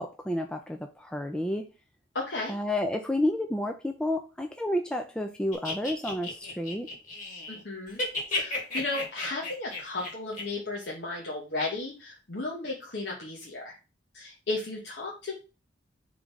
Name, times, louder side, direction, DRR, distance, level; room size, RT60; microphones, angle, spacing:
voice 1, 0.0-1.7 2.5-6.9, left 1 dB, 5° left, 4 dB, 0.4 m, -30 dB
voice 2, 2.1-2.5 7.5-8.0 8.3-13.7 14.1-15.3, left 2 dB, 55° left, -3 dB, 1.2 m, -34 dB
sound 1, 5.5-7.6 7.9-10.4, left 2 dB, 40° left, 1.9 m, -33 dB
4.7 x 3.8 x 5.4 m, 0.31 s
head